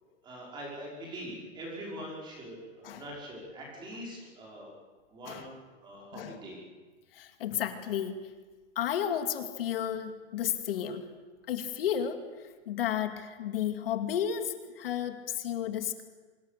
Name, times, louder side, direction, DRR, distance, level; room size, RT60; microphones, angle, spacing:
voice 1, 0.2-4.7 5.1-6.6, right 1 dB, 10° right, -3 dB, 5.3 m, -43 dB
voice 2, 7.1-8.2 8.8-11.1 11.5-12.2 12.7-16.0, left 9 dB, 45° left, 7 dB, 2.4 m, -32 dB
25.0 x 23.0 x 6.8 m, 1.4 s
hypercardioid pair, 180°, 38 cm